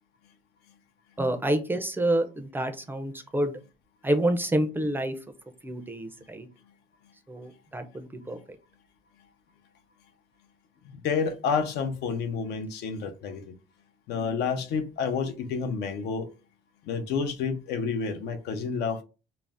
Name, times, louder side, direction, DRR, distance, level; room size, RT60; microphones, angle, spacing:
voice 1, 1.2-3.6 4.0-5.2 5.6-6.5 7.3-8.4, right 1 dB, 10° right, 0.4 m, -28 dB
voice 2, 10.9-13.5 14.1-16.3 16.9-19.0, left 5 dB, 80° left, 0.6 m, -29 dB
2.5 x 2.0 x 3.3 m
cardioid pair, 110°, 17 cm